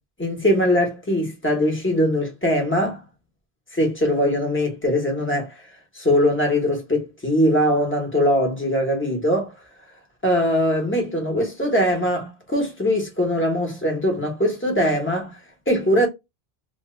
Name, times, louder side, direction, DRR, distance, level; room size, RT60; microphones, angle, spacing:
voice 1, 0.2-3.0 3.7-5.6 5.9-9.5 10.2-15.3 15.7-16.1, equal, 10° left, 1.0 m, -21 dB
3.0 x 2.3 x 3.1 m
omnidirectional pair, 1.0 m